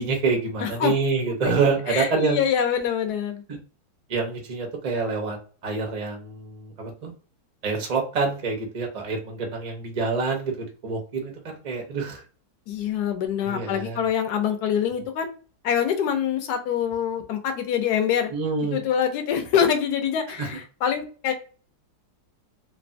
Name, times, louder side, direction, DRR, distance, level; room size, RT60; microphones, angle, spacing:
voice 1, 0.0-2.4 3.5-3.6 4.1-5.4 5.6-7.1 7.6-12.2 13.4-14.1 18.3-18.8 20.4-20.5, right 4 dB, 65° right, 2 dB, 0.3 m, -26 dB
voice 2, 0.6-0.9 1.4-3.4 12.7-15.3 15.6-18.3 18.7-21.3, left 8 dB, 70° left, 6 dB, 1.1 m, -25 dB
3.3 x 2.1 x 2.5 m, 0.37 s
omnidirectional pair, 1.9 m